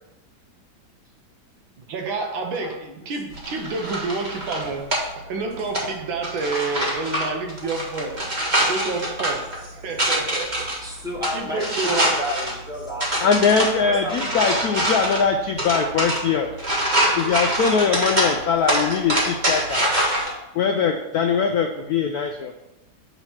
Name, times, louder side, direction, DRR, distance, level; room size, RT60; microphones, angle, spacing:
voice 1, 1.9-4.9 5.2-8.1 8.6-10.5 11.3-12.1, right 3 dB, 80° right, 3 dB, 1.7 m, -29 dB
sound 1, 3.3-20.3, right 1 dB, 25° right, 1.3 m, -25 dB
voice 2, 8.1-8.5 10.1-10.2 10.8-13.3 13.8-15.2, equal, ahead, -4 dB, 1.1 m, -32 dB
voice 3, 13.2-16.5 17.2-19.8 20.5-22.5, left 6 dB, 75° left, 4 dB, 0.8 m, -21 dB
6.7 x 3.1 x 5.6 m, 0.94 s
omnidirectional pair, 2.1 m